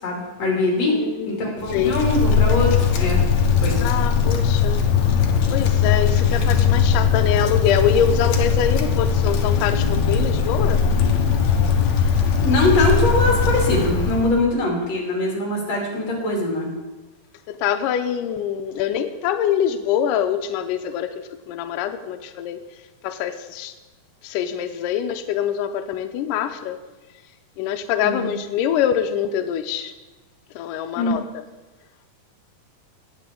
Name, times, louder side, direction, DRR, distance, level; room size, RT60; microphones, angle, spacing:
voice 1, 0.0-1.0 1.3-3.2 3.6-3.8 12.4-16.7 28.0-28.3 31.0-31.2, left 2 dB, 45° left, -2 dB, 3.9 m, -22 dB
voice 2, 0.8-2.0 3.8-4.8 5.5-10.8 17.5-22.6 23.0-23.7 24.2-26.8 27.6-29.9 30.6-31.4, left 9 dB, 90° left, 8 dB, 1.9 m, -24 dB
Wind, 1.6-14.4, left 6 dB, 70° left, 1.8 m, -19 dB
18.5 x 8.3 x 3.8 m, 1.2 s
omnidirectional pair, 4.5 m